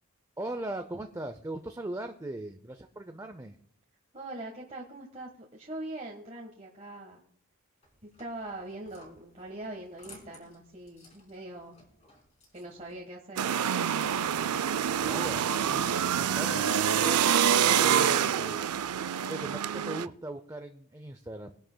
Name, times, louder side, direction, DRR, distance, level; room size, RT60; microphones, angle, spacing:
voice 1, 0.4-3.6 15.0-18.7 19.3-21.6, right 1 dB, 15° right, 7 dB, 0.5 m, -39 dB
voice 2, 4.1-7.2 8.2-11.7 12.5-13.5, right 1 dB, 30° right, -1 dB, 1.4 m, -42 dB
sound 1, 7.8-13.0, left 2 dB, 30° left, 3.7 m, -57 dB
sound 2, 13.4-20.1, right 9 dB, 90° right, 0.4 m, -26 dB
23.0 x 11.0 x 2.2 m, 0.63 s
head